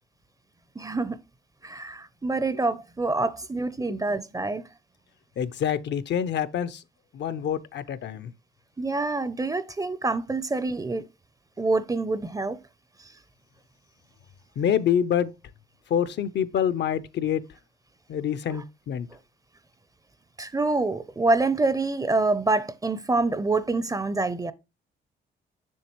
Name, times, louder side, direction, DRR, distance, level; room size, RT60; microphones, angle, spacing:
voice 1, 0.8-1.2 1.6-4.6 8.8-11.0 11.6-12.6 18.5-18.6 20.4-24.5, right 3 dB, 15° right, 0.5 m, -26 dB
voice 2, 5.4-6.8 7.1-8.3 14.6-15.3 15.9-17.4 18.1-19.1, left 9 dB, 60° left, 0.6 m, -26 dB
7.2 x 6.4 x 3.0 m
cardioid pair, 90°, 20 cm